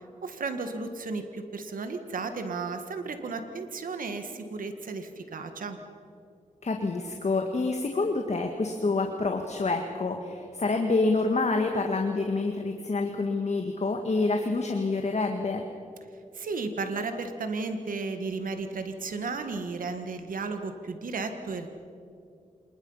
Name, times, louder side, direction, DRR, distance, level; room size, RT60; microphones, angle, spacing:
voice 1, 0.2-5.8 16.3-21.7, right 4 dB, 85° right, 7 dB, 1.7 m, -34 dB
voice 2, 6.6-15.6, left 3 dB, 55° left, 3 dB, 1.9 m, -27 dB
26.5 x 21.0 x 5.7 m, 2.4 s
cardioid pair, 55°, 14 cm